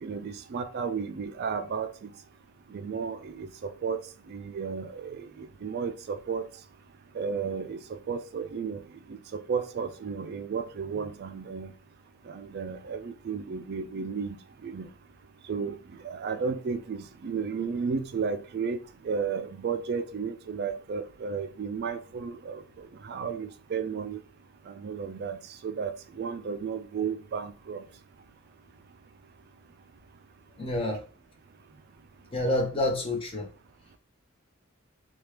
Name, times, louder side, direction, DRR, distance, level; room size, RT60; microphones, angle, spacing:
voice 1, 0.0-2.1 2.7-4.0 4.3-6.5 7.1-8.8 9.1-11.7 12.3-14.4 14.6-14.9 15.5-15.8 16.0-18.8 19.0-24.2 24.7-27.8, right 5 dB, 50° right, 0.3 m, -33 dB
voice 2, 30.6-31.0 32.3-33.5, left 1 dB, 25° left, 0.7 m, -28 dB
2.9 x 2.3 x 3.2 m
head